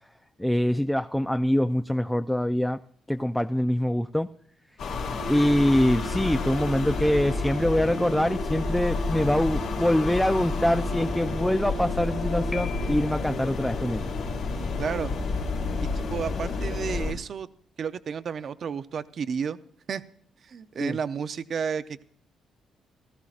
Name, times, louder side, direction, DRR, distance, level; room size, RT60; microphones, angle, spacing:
voice 1, 0.4-2.8 3.1-4.3 5.3-14.1 20.8-21.0, left 1 dB, 5° left, 9 dB, 0.4 m, -24 dB
sound 1, 4.8-17.1, left 4 dB, 80° left, 3.2 m, -30 dB
sound 2, 5.2-13.0, right 5 dB, 70° right, 1.2 m, -39 dB
Piano, 12.5-13.5, left 5 dB, 20° left, 1.1 m, -41 dB
voice 2, 14.8-15.1 15.8-17.5 17.8-19.6 19.9-20.0 20.4-22.0, right 6 dB, 55° right, 11 dB, 0.6 m, -32 dB
18.0 x 14.5 x 2.5 m, 0.62 s
cardioid pair, 90°, 0 cm